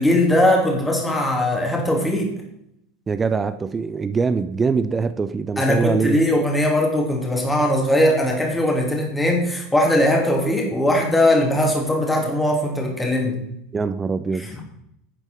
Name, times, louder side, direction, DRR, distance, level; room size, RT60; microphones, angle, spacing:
voice 1, 0.0-2.3 5.6-13.4 14.3-14.6, left 1 dB, 10° left, 3.0 m, -20 dB
voice 2, 3.1-6.2 13.7-14.5, right 5 dB, 20° right, 0.6 m, -23 dB
11.5 x 8.9 x 4.6 m
figure-of-eight pair, 80°, 0 cm